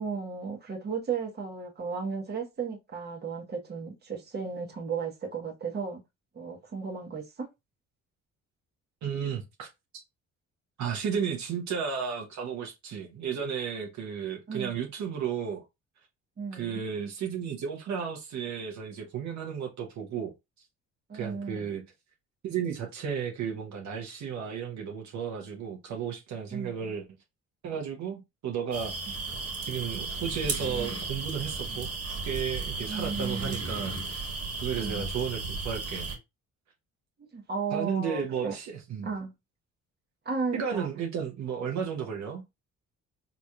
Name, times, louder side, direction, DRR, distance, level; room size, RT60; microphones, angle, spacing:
voice 1, 0.0-6.0 6.3-7.5 14.5-14.8 16.4-16.8 21.1-21.8 26.5-26.9 29.1-29.3 32.9-33.6 34.8-35.1 37.2-38.5 39.0-39.3 40.2-40.9, right 5 dB, 35° right, 1.2 m, -35 dB
voice 2, 9.0-9.7 10.8-15.6 16.5-20.3 21.1-21.8 22.4-27.0 27.6-29.2 29.7-31.9 32.2-34.2 34.6-36.1 37.7-39.1 40.5-42.4, right 7 dB, 70° right, 1.0 m, -33 dB
sound 1, 28.7-36.2, right 3 dB, 50° right, 1.5 m, -34 dB
4.0 x 3.0 x 2.4 m
cardioid pair, 90°, 30 cm